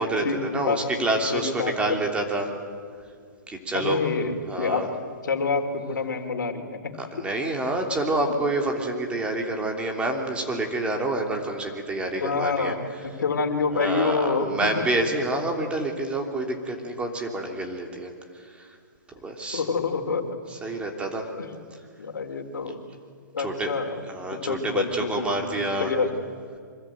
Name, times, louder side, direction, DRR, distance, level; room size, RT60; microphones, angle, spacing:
voice 1, 0.0-2.5 3.5-4.0 4.5-4.9 7.0-12.8 13.7-18.1 18.4-18.8 19.2-19.6 20.5-21.3 23.4-25.9, right 2 dB, 10° right, 2 dB, 3.3 m, -28 dB
voice 2, 1.3-1.8 3.7-4.8 5.2-6.9 12.2-14.5 14.7-14.8 19.5-20.4 21.4-21.5 22.0-22.8 23.3-23.9 24.3-26.1, left 4 dB, 75° left, 6 dB, 3.1 m, -27 dB
25.5 x 22.0 x 9.2 m, 2.1 s
hypercardioid pair, 135°, 10 cm